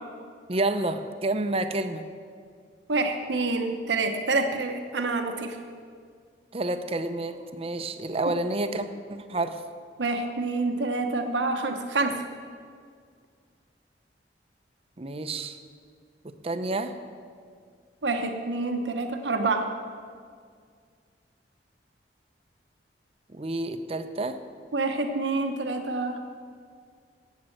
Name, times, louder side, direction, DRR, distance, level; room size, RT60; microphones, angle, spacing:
voice 1, 0.5-2.1 6.5-9.6 15.0-15.6 16.4-16.9 23.3-24.4, right 2 dB, 35° right, 9 dB, 0.7 m, -29 dB
voice 2, 2.9-5.6 10.0-12.2 18.0-19.7 24.7-26.2, right 3 dB, 80° right, 5 dB, 1.0 m, -27 dB
12.0 x 8.4 x 7.8 m, 2.1 s
head